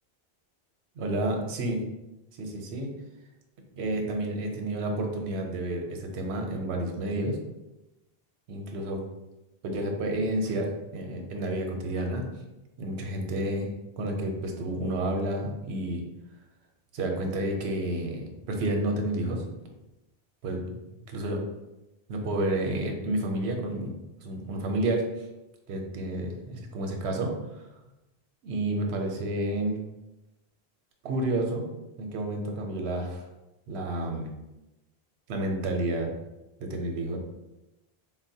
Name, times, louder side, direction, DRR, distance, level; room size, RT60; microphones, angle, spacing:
voice 1, 1.0-1.8 2.4-2.9 3.8-7.4 8.5-9.0 9.6-12.2 12.8-13.7 14.0-16.0 16.9-19.4 20.4-20.6 21.1-21.4 22.1-23.9 24.2-25.1 25.7-27.3 28.4-29.8 31.0-31.6 32.0-33.2 33.7-34.3 35.3-36.1 36.6-37.2, right 1 dB, 90° right, 2 dB, 0.9 m, -30 dB
4.0 x 2.1 x 2.6 m, 0.98 s
omnidirectional pair, 1.1 m